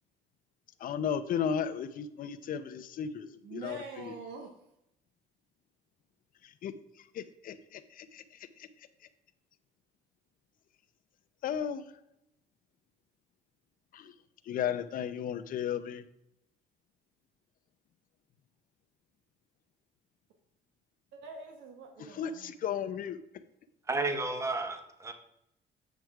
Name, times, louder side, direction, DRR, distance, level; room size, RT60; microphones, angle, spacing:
voice 1, 0.8-4.1 6.4-8.9 11.4-11.8 13.9-14.1 14.4-16.0 22.0-23.2, left 8 dB, 55° left, 10 dB, 0.8 m, -35 dB
voice 2, 3.4-4.5 21.1-22.5, right 4 dB, 85° right, 3 dB, 1.3 m, -45 dB
voice 3, 23.9-25.1, right 3 dB, 15° right, 7 dB, 1.0 m, -32 dB
8.2 x 6.2 x 4.7 m, 0.82 s
cardioid pair, 110°, 17 cm